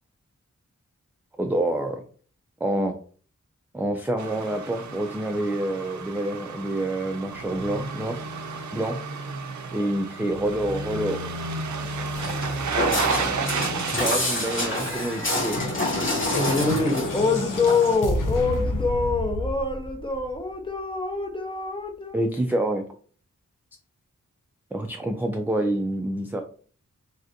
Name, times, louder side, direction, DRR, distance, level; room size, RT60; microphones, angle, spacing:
voice 1, 1.4-2.0 2.6-2.9 3.7-8.2 8.7-9.0 9.7-11.2 13.9-15.6 22.1-22.8 24.7-26.4, right 1 dB, 5° right, 0.3 m, -27 dB
sound 1, 4.2-16.1 16.4-16.5, right 4 dB, 70° right, 0.5 m, -32 dB
Walk footsteps, 12.2-18.0, left 1 dB, 40° left, 1.2 m, -28 dB
sound 2, 15.2-20.5, left 1 dB, 90° left, 0.6 m, -30 dB
voice 2, 16.4-22.2, left 3 dB, 15° left, 0.7 m, -25 dB
3.2 x 2.5 x 2.7 m
wide cardioid pair, 70°, 31 cm